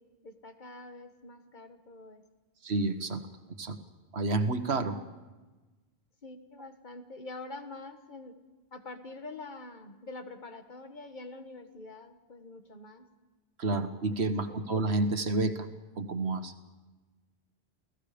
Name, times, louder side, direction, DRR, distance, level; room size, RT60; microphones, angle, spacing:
voice 1, 0.0-2.2 6.2-8.4 8.7-13.1, left 2 dB, 45° left, 7 dB, 1.6 m, -45 dB
voice 2, 2.6-3.2 3.6-3.8 4.1-5.0 13.6-15.7 16.0-16.5, right 2 dB, 75° right, 9 dB, 1.6 m, -29 dB
29.5 x 17.0 x 5.1 m, 1.2 s
omnidirectional pair, 1.1 m